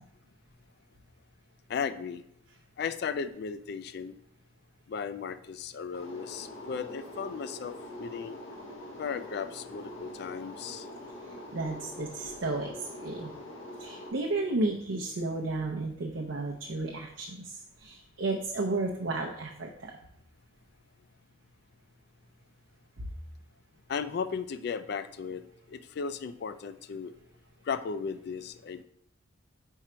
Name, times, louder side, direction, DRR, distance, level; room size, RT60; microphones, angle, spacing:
voice 1, 1.7-2.2 2.8-4.2 4.9-8.4 9.0-10.9 23.9-27.2 27.6-28.8, left 6 dB, 55° left, 12 dB, 0.3 m, -36 dB
sound 1, 5.9-14.1, left 1 dB, 85° left, 1.4 m, -44 dB
voice 2, 11.5-12.7 13.0-13.3 13.8-19.9, right 2 dB, 70° right, 0 dB, 0.6 m, -33 dB
4.6 x 4.3 x 4.9 m, 0.75 s
head